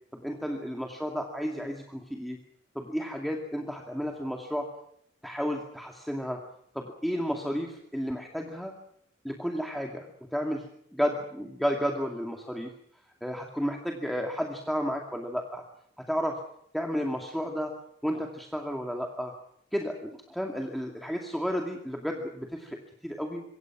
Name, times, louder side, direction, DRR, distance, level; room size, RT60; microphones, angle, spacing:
voice 1, 0.1-2.4 2.7-4.7 5.2-6.4 6.7-8.7 9.2-10.1 10.3-10.7 10.9-12.7 13.2-15.6 16.1-16.4 16.7-17.7 18.0-19.3 19.7-23.4, equal, ahead, 2 dB, 2.4 m, -32 dB
26.5 x 24.0 x 6.1 m, 0.70 s
head